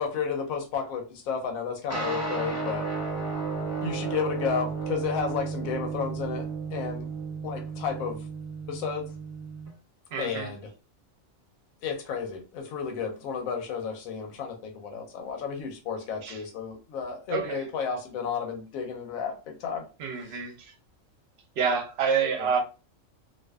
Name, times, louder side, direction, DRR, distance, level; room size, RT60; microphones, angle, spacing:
voice 1, 0.0-2.8 3.8-7.1 7.4-8.2 8.7-9.1 10.2-10.7 11.8-19.8 20.3-20.4 22.4-22.5, left 6 dB, 90° left, 1.0 m, -32 dB
sound 1, 1.9-9.7, right 4 dB, 20° right, 0.5 m, -33 dB
voice 2, 10.1-10.5 16.2-16.4 17.3-17.6 20.0-20.7 21.6-22.6, right 6 dB, 65° right, 0.7 m, -28 dB
2.5 x 2.2 x 2.2 m
omnidirectional pair, 1.4 m